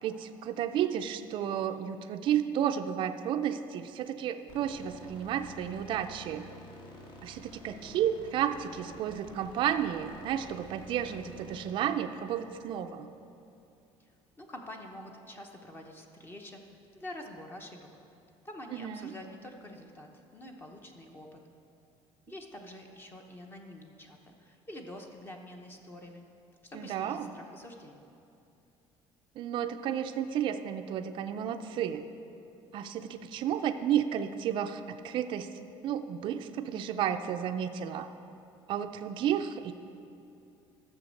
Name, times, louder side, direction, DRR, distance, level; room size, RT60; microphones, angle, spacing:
voice 1, 0.0-6.5 7.2-13.1 18.8-19.1 26.7-27.3 29.4-32.0 32.7-35.5 35.8-38.1 38.7-39.7, right 9 dB, 45° right, 7 dB, 0.4 m, -32 dB
sound 1, 4.5-13.7, equal, 55° left, 1.9 m, -50 dB
voice 2, 14.4-16.6 16.9-17.9 18.4-21.4 22.3-26.2 26.6-28.1, left 1 dB, 20° left, 2 dB, 0.8 m, -47 dB
12.5 x 7.0 x 6.5 m, 2.7 s
cardioid pair, 175°, 11 cm